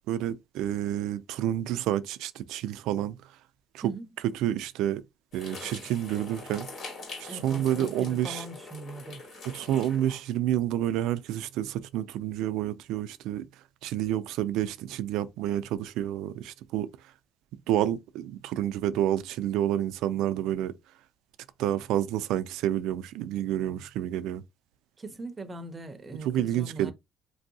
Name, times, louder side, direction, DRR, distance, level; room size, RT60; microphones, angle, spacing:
voice 1, 0.1-3.2 3.7-3.8 4.3-5.0 5.3-6.7 7.2-8.4 9.4-13.4 13.8-16.9 17.7-20.7 21.6-24.4 26.2-26.9, right 11 dB, 80° right, 0.3 m, -29 dB
sound 1, 5.3-10.3, left 3 dB, 55° left, 1.5 m, -43 dB
voice 2, 7.3-9.2 25.0-26.9, right 2 dB, 20° right, 0.5 m, -40 dB
3.2 x 2.6 x 2.7 m
cardioid pair, 135°, 0 cm